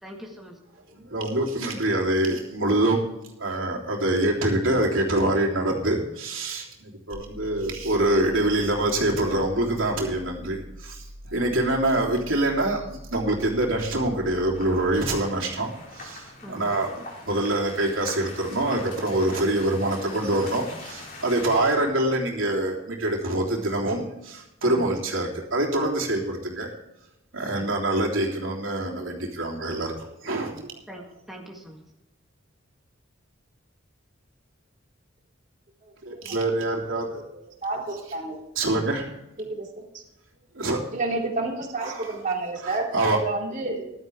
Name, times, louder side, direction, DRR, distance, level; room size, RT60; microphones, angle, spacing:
voice 1, 0.0-0.5 16.4-16.7 24.6-24.9 27.5-27.7 30.9-31.8, equal, ahead, -1 dB, 1.7 m, -42 dB
voice 2, 0.9-3.0 3.4-26.7 27.3-29.9 30.2-30.7 36.0-37.2 38.5-39.1 40.5-40.8 41.8-42.1 42.6-43.2, right 1 dB, 80° right, -1 dB, 3.2 m, -25 dB
sound 1, 7.1-15.1, equal, 20° left, 2.3 m, -43 dB
sound 2, 14.5-21.6, left 2 dB, 50° left, 4.8 m, -42 dB
voice 3, 37.6-38.4 39.4-39.8 40.9-43.9, right 2 dB, 40° right, 0 dB, 2.9 m, -29 dB
14.5 x 11.5 x 3.5 m, 0.91 s
head